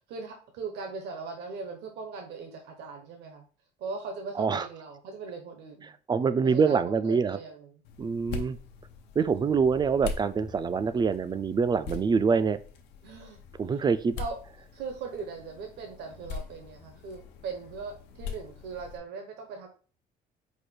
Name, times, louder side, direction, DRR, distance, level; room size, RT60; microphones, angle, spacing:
voice 1, 0.1-3.4 3.8-5.9 6.4-7.7 9.4-9.6 13.0-13.4 13.7-13.8 14.2-14.4 14.7-19.7, right 4 dB, 80° right, 3 dB, 1.0 m, -39 dB
voice 2, 6.1-7.4 8.0-8.6 9.2-12.6 13.6-14.2, right 5 dB, 25° right, 13 dB, 0.3 m, -25 dB
sound 1, 7.8-19.0, left 5 dB, 85° left, 0.7 m, -42 dB
4.9 x 2.2 x 4.3 m, 0.38 s
cardioid pair, 110°, 17 cm